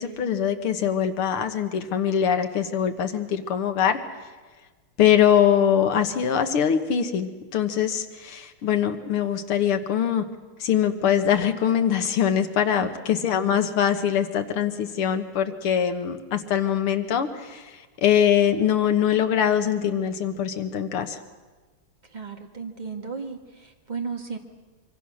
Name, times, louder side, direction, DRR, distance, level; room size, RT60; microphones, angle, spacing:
voice 1, 0.0-4.0 5.0-10.3 10.6-21.2, left 9 dB, 85° left, 7 dB, 2.2 m, -23 dB
voice 2, 12.8-13.1 22.1-24.4, right 5 dB, 20° right, 3 dB, 1.7 m, -35 dB
24.5 x 24.5 x 6.4 m, 1.3 s
omnidirectional pair, 2.4 m